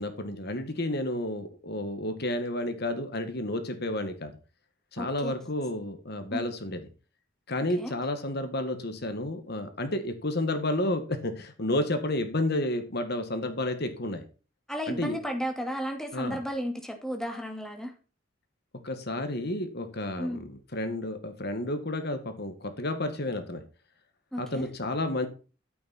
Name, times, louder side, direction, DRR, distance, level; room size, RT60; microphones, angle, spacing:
voice 1, 0.0-4.3 4.9-6.8 7.5-14.2 14.9-15.2 16.1-16.4 18.8-23.6 24.4-25.3, left 1 dB, 50° left, 7 dB, 2.0 m, -31 dB
voice 2, 5.0-5.3 6.3-6.4 7.8-7.9 14.7-17.9 20.2-20.4 24.3-24.7, equal, 5° left, 3 dB, 2.5 m, -33 dB
13.5 x 9.3 x 4.5 m, 0.35 s
head